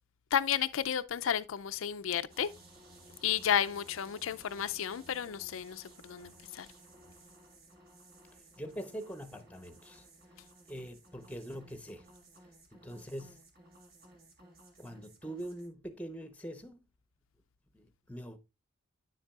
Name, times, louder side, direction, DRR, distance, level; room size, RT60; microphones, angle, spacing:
voice 1, 0.3-2.5 3.2-6.7, left 9 dB, 85° left, 0.5 m, -32 dB
sound 1, 2.3-15.7, right 1 dB, 50° right, 1.9 m, -57 dB
voice 2, 8.6-12.1 12.7-13.4 14.8-16.8 17.7-18.4, right 1 dB, 5° left, 0.8 m, -44 dB
9.8 x 7.2 x 2.4 m
head